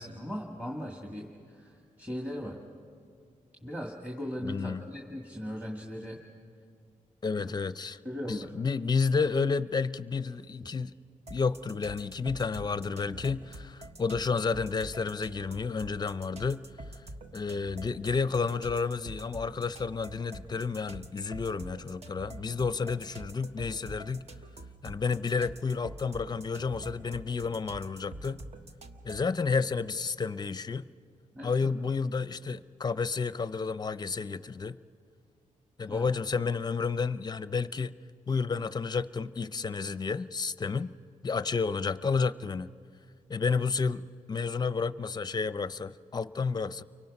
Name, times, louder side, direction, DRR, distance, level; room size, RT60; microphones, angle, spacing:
voice 1, 0.0-2.6 3.6-6.2 7.4-7.5 8.0-8.5 31.3-31.7 35.9-36.0, equal, 10° right, 2.0 m, -38 dB
voice 2, 4.4-4.9 7.2-8.0 8.3-10.9 11.3-16.6 17.3-24.2 24.8-28.4 29.0-30.8 31.4-34.8 35.8-37.9 38.3-40.9 41.2-42.7 43.3-46.8, left 5 dB, 30° left, 0.5 m, -31 dB
sound 1, 11.3-29.4, right 1 dB, 50° right, 1.2 m, -46 dB
29.5 x 24.0 x 5.4 m
cardioid pair, 105°, 14 cm